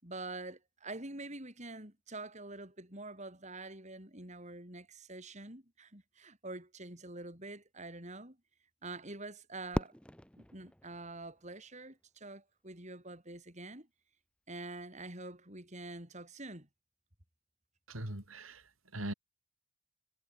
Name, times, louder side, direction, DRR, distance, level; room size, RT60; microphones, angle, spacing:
voice 1, 0.0-8.4 8.8-9.9 10.4-13.9 14.5-16.7, right 2 dB, 35° right, 6.9 m, -46 dB
Fireworks, 9.7-11.9, equal, 5° left, 2.5 m, -40 dB
voice 2, 17.9-19.1, right 1 dB, 85° right, 5.7 m, -41 dB
head